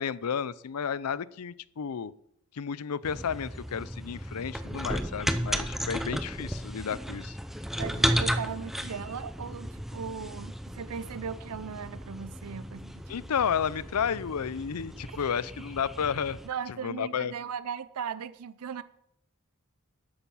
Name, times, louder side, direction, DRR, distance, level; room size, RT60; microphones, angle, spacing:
voice 1, 0.0-2.1 2.5-7.4 13.1-16.4 16.8-17.3, left 7 dB, 90° left, 19 dB, 0.5 m, -32 dB
sound 1, 3.0-16.5, equal, ahead, 0.7 m, -34 dB
voice 2, 7.8-12.9 16.4-18.8, right 7 dB, 90° right, 15 dB, 0.5 m, -38 dB
13.0 x 8.7 x 5.6 m, 0.74 s
head